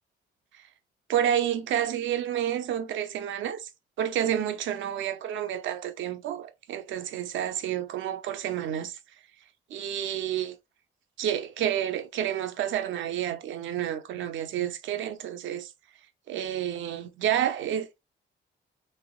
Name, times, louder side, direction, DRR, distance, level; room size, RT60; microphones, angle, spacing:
voice 1, 1.1-3.7 4.0-9.0 9.7-10.6 11.2-15.7 16.3-18.0, right 10 dB, 75° right, 0.5 m, -29 dB
3.2 x 2.9 x 2.2 m
cardioid pair, 90°, 20 cm